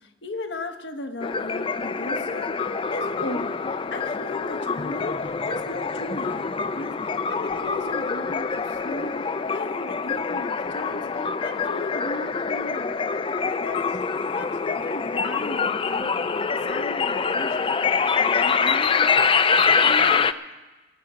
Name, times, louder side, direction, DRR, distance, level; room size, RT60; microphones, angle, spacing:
voice 1, 0.0-14.1 14.3-17.7 18.1-19.2 19.5-20.3, left 2 dB, 75° left, 6 dB, 1.1 m, -36 dB
sound 1, 1.2-20.3, left 5 dB, 30° left, 0.4 m, -25 dB
22.0 x 7.7 x 6.1 m, 1.2 s
head